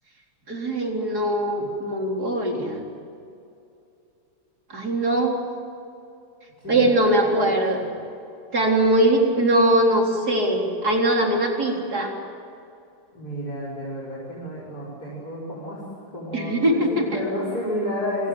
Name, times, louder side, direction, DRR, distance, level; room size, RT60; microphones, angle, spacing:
voice 1, 0.5-2.8 4.7-5.4 6.7-7.8 8.5-12.1 16.3-17.0, right 1 dB, 55° right, 0 dB, 4.5 m, -21 dB
voice 2, 6.6-7.8 8.1-8.2 13.1-15.8 16.1-18.3, equal, 50° left, -6 dB, 6.7 m, -31 dB
28.5 x 24.0 x 8.0 m, 2.6 s
omnidirectional pair, 2.1 m